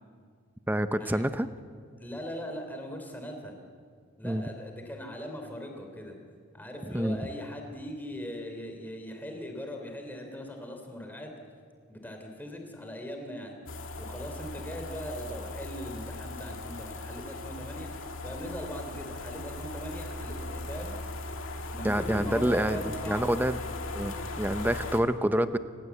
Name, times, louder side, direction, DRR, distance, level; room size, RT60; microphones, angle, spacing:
voice 1, 0.7-1.5 4.2-4.4 6.9-7.2 21.8-23.6 23.9-25.6, right 1 dB, 10° right, 11 dB, 0.7 m, -27 dB
voice 2, 2.0-3.5 4.2-6.2 6.5-11.3 11.9-13.6 14.0-20.9 21.7-23.3, equal, 10° left, 3 dB, 3.3 m, -40 dB
sound 1, 13.7-25.0, left 2 dB, 80° left, 2.2 m, -38 dB
29.0 x 16.5 x 8.4 m, 2.2 s
head